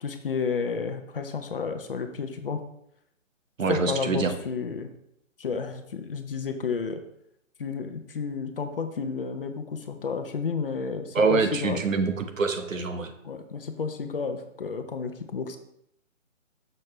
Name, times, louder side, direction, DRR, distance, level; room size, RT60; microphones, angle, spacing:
voice 1, 0.0-2.6 3.7-4.9 5.4-7.0 7.6-11.8 13.2-15.6, left 5 dB, 45° left, 7 dB, 0.7 m, -31 dB
voice 2, 3.6-4.3 11.1-13.1, right 4 dB, 85° right, 7 dB, 1.1 m, -25 dB
6.5 x 6.4 x 3.2 m, 0.77 s
hypercardioid pair, 165°, 38 cm